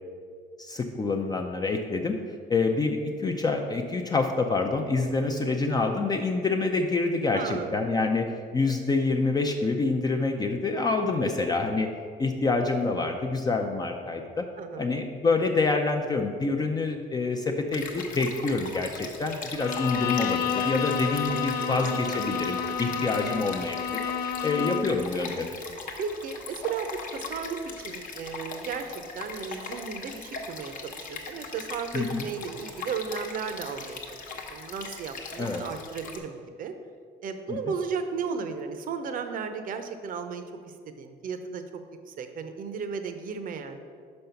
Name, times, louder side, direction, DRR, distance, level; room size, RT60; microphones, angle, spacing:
voice 1, 0.6-2.1 2.5-11.9 12.2-14.5 14.8-23.8 24.4-25.5 31.9-32.2 35.4-35.6 37.5-37.6, left 3 dB, 25° left, 3 dB, 0.5 m, -27 dB
voice 2, 7.3-7.7 11.4-11.6 14.6-15.0 21.6-22.2 22.9-23.0 26.0-34.0 34.5-36.7 37.2-41.6 42.1-43.8, right 6 dB, 55° right, 8 dB, 0.7 m, -35 dB
Stream, 17.7-36.2, left 4 dB, 50° left, 1.0 m, -40 dB
Bowed string instrument, 19.6-25.0, left 7 dB, 70° left, 0.5 m, -30 dB
5.4 x 5.3 x 5.7 m, 2.1 s
cardioid pair, 110°, 17 cm